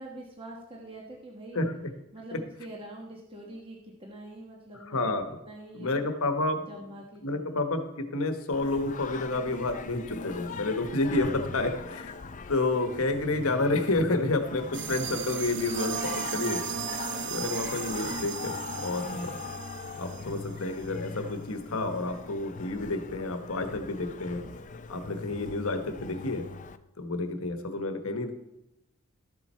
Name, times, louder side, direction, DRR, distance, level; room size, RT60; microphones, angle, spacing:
voice 1, 0.0-1.6 2.1-5.2 5.5-6.0 6.7-7.6 11.6-11.9, right 1 dB, 25° right, -1 dB, 1.2 m, -45 dB
voice 2, 1.5-1.9 2.3-2.4 4.8-5.4 5.7-6.7 7.2-12.1 12.5-19.3 20.0-24.4 24.9-26.5 27.0-28.3, left 2 dB, 70° left, 7 dB, 1.2 m, -30 dB
Singing, 8.5-26.8, left 4 dB, 35° left, 0.4 m, -41 dB
sound 1, 14.7-21.0, right 7 dB, 50° right, 0.6 m, -36 dB
13.0 x 7.4 x 4.4 m, 0.90 s
head